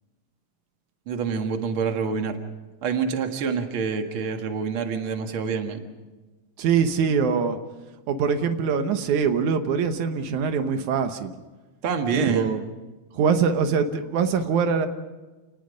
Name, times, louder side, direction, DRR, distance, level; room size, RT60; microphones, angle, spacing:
voice 1, 1.1-2.4 2.8-5.9 11.8-12.6, right 5 dB, 50° right, 5 dB, 2.4 m, -26 dB
voice 2, 6.6-7.6 8.1-11.3 12.1-12.6 13.1-14.9, right 6 dB, 85° right, 8 dB, 2.6 m, -23 dB
29.5 x 19.5 x 5.2 m, 1.2 s
omnidirectional pair, 3.3 m